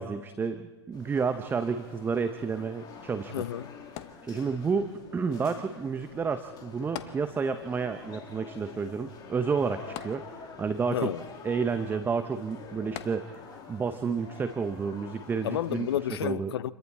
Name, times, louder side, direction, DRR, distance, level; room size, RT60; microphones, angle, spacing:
voice 1, 0.0-3.3 4.2-11.1 11.4-13.4 13.7-15.9 16.2-16.5, right 5 dB, 15° right, 0.9 m, -30 dB
sound 1, 0.9-16.2, left 5 dB, 25° left, 3.0 m, -47 dB
voice 2, 3.3-3.7 10.9-11.2 15.4-16.7, left 11 dB, 60° left, 0.8 m, -31 dB
sound 2, 4.0-4.9 6.9-7.8 8.1-8.2 10.0-10.8 12.9-13.7 14.4-14.5, left 12 dB, 45° left, 1.2 m, -43 dB
28.5 x 22.5 x 4.3 m
figure-of-eight pair, 105°, 15 cm